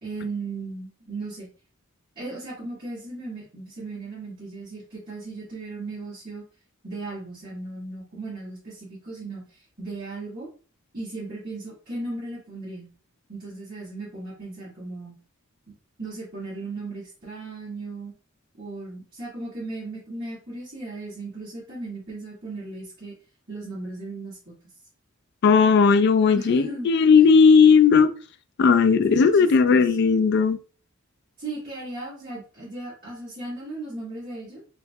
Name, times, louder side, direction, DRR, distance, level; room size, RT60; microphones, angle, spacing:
voice 1, 0.0-1.5 2.2-6.4 6.8-10.5 10.9-12.9 13.3-15.2 16.0-18.1 18.6-23.1 23.5-24.6 25.9-27.2 28.9-29.8 31.4-34.6, right 2 dB, 40° right, 1.9 m, -36 dB
voice 2, 25.4-28.1 28.6-30.6, left 5 dB, 50° left, 0.3 m, -16 dB
4.2 x 3.0 x 2.7 m
head